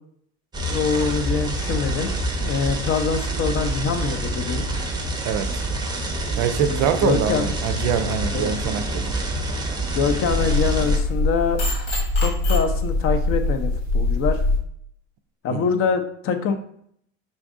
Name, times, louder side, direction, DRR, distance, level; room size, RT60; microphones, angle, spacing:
sound 1, 0.5-11.0, right 1 dB, 15° right, 0.6 m, -27 dB
voice 1, 0.7-2.1 2.4-4.7 6.6-7.6 8.3-8.5 9.9-11.6 12.2-14.4 15.4-16.6, left 5 dB, 40° left, 7 dB, 0.5 m, -24 dB
voice 2, 5.2-5.6 6.4-9.1 15.5-15.8, right 8 dB, 60° right, 9 dB, 0.5 m, -24 dB
sound 2, 10.3-14.6, left 2 dB, 80° left, 1.5 m, -22 dB
5.2 x 2.5 x 2.4 m, 0.67 s
hypercardioid pair, 90°, 33 cm